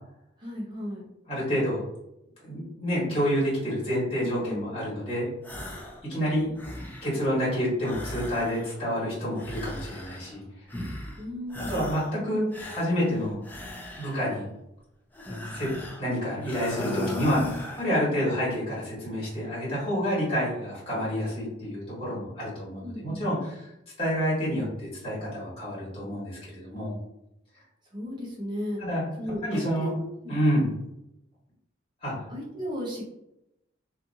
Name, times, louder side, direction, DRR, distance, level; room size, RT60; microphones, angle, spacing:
voice 1, 0.4-1.1 4.2-4.6 11.2-11.9 17.4-17.6 22.8-23.2 27.9-28.8 29.2-30.3 32.3-33.0, left 1 dB, 25° right, -4 dB, 0.8 m, -35 dB
voice 2, 1.3-1.8 2.4-5.3 6.0-6.5 7.0-10.4 11.7-12.5 12.7-13.4 14.0-14.5 15.1-15.7 16.0-17.4 17.8-23.7 24.0-26.9 28.8-29.0 29.4-29.9 30.3-30.8 32.0-32.1, equal, 30° left, -8 dB, 1.3 m, -28 dB
sound 1, 5.4-6.0 6.4-7.2 7.8-8.9 9.3-10.4 10.7-11.2 11.5-12.1 12.5-14.4 15.1-16.1 16.4-17.9, left 1 dB, 10° left, 0.3 m, -38 dB
2.6 x 2.5 x 2.5 m, 0.85 s
head